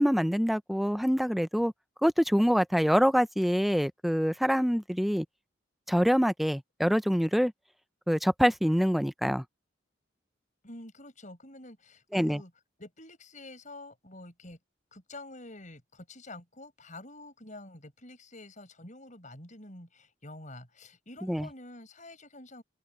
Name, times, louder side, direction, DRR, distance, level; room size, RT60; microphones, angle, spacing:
voice 1, 0.0-1.7 2.0-5.3 5.9-7.5 8.1-9.4 12.1-12.4 21.2-21.5, equal, ahead, 0.5 m, -25 dB
voice 2, 10.6-12.5 12.8-14.6 14.9-22.6, left 2 dB, 40° left, 7.7 m, -48 dB
open air
head